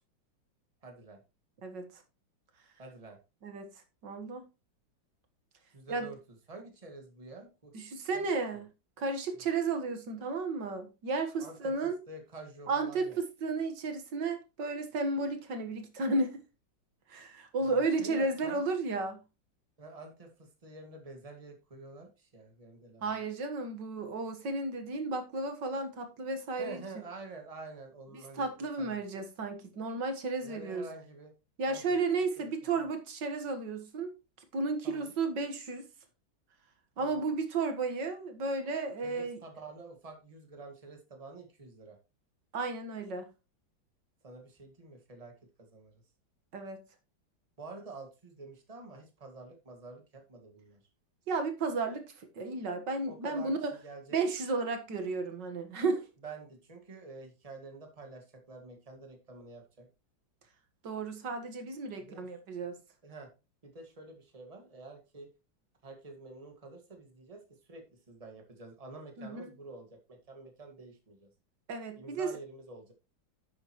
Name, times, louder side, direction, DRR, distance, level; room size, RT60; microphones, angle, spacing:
voice 1, 0.8-1.2 2.8-3.2 5.7-6.2 6.5-7.7 8.1-8.3 11.4-13.2 17.6-18.6 19.8-23.0 26.6-28.5 28.8-28.9 30.4-31.3 31.7-31.8 32.4-32.5 32.8-32.9 34.8-35.1 37.0-37.2 39.0-42.0 44.2-45.3 45.6-45.9 47.6-50.8 53.1-53.5 53.8-54.2 56.2-59.9 62.0-62.3 63.0-63.3 63.6-65.3 65.8-67.4 67.7-71.3 72.0-72.9, right 3 dB, 20° right, 1.9 m, -48 dB
voice 2, 1.6-2.0 3.4-3.7 4.0-4.4 5.9-6.1 7.7-8.7 9.0-12.0 12.7-16.4 17.1-19.2 23.0-26.8 28.3-30.9 31.6-34.1 34.5-35.9 37.0-39.4 42.5-43.3 46.5-46.8 51.3-53.8 54.1-56.1 60.8-62.8 69.2-69.5 71.7-72.3, right 3 dB, 65° right, 2.1 m, -33 dB
10.5 x 8.0 x 3.0 m
omnidirectional pair, 2.1 m